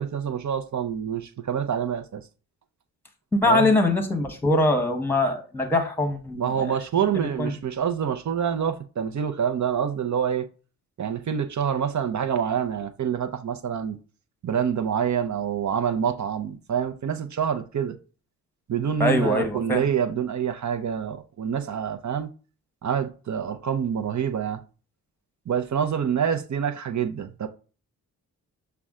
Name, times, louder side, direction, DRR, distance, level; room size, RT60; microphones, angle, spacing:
voice 1, 0.0-2.2 3.4-3.7 6.4-10.5 11.0-14.0 14.4-18.0 18.7-22.3 22.8-24.6 25.5-27.5, right 8 dB, 45° right, 0.6 m, -26 dB
voice 2, 3.3-6.7 7.1-7.5 19.0-19.9, left 2 dB, 5° left, 1.1 m, -23 dB
5.9 x 2.2 x 3.6 m
supercardioid pair, 45°, 40 cm